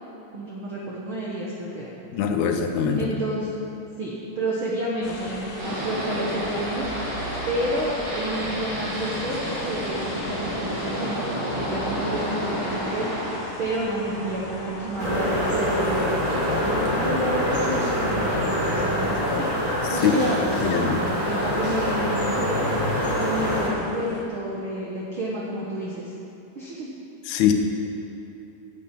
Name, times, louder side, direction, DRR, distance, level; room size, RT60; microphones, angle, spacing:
voice 1, 0.3-1.9 3.0-3.5 4.0-6.9 7.5-16.1 16.4-19.5 19.9-26.1 26.5-26.9, right 1 dB, 85° right, -4 dB, 1.1 m, -30 dB
voice 2, 2.1-3.1 20.0-20.1 20.6-21.0 27.3-27.5, left 8 dB, 80° left, 5 dB, 2.9 m, -22 dB
sound 1, 5.0-24.2, left 1 dB, 55° left, 1.4 m, -38 dB
sound 2, 5.6-13.3, right 1 dB, 50° right, 4.7 m, -31 dB
sound 3, 15.0-23.7, equal, 15° right, 1.9 m, -25 dB
10.5 x 8.4 x 8.7 m, 2.8 s
omnidirectional pair, 4.6 m